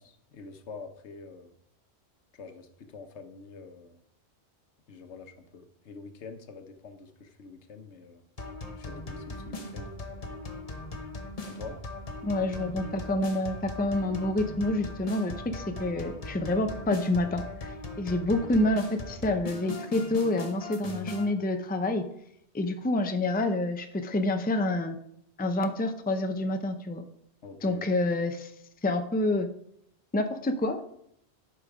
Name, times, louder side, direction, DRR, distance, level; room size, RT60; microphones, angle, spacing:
voice 1, 0.0-1.5 2.3-4.0 4.9-8.2 8.8-9.9 11.4-11.8 27.4-27.8, left 4 dB, 85° left, 7 dB, 1.2 m, -46 dB
sound 1, 8.4-21.3, left 2 dB, 35° left, 1.0 m, -39 dB
voice 2, 12.2-17.7 18.0-22.0 22.5-25.0 25.4-27.0 27.6-28.5 28.8-29.5 30.1-30.8, left 1 dB, 10° left, 7 dB, 0.5 m, -28 dB
10.0 x 5.6 x 4.9 m, 0.74 s
omnidirectional pair, 1.1 m